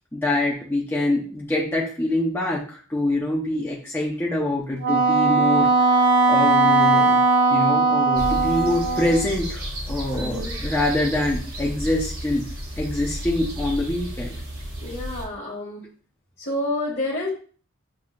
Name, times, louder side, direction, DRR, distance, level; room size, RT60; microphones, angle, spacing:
voice 1, 0.1-7.2 7.5-12.5 12.8-14.4, left 1 dB, 10° left, -4 dB, 0.6 m, -25 dB
Wind instrument woodwind instrument, 4.8-9.3, right 3 dB, 50° right, 0.4 m, -19 dB
sound 1, 8.1-15.2, equal, 70° right, 2.0 m, -32 dB
voice 2, 10.1-10.5 14.8-15.8 16.4-17.3, left 1 dB, 45° left, -5 dB, 1.2 m, -29 dB
7.2 x 2.6 x 2.5 m, 0.43 s
head